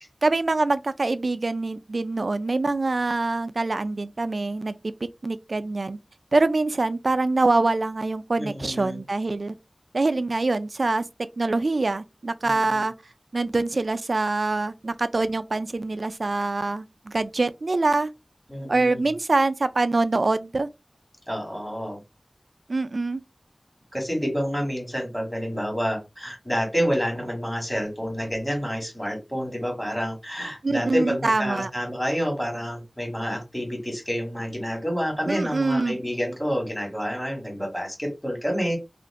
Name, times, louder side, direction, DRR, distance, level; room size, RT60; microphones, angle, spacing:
voice 1, 0.2-4.7 5.2-6.0 6.3-9.5 9.9-11.0 11.4-12.9 13.3-18.1 18.7-20.7 22.7-23.2 30.6-31.7 35.3-36.0, right 3 dB, 75° right, 0.3 m, -24 dB
voice 2, 8.3-9.0 12.4-12.8 18.5-19.1 21.3-22.0 23.9-38.8, equal, 10° left, 1.8 m, -28 dB
2.9 x 2.5 x 3.5 m
wide cardioid pair, 55°, 0 cm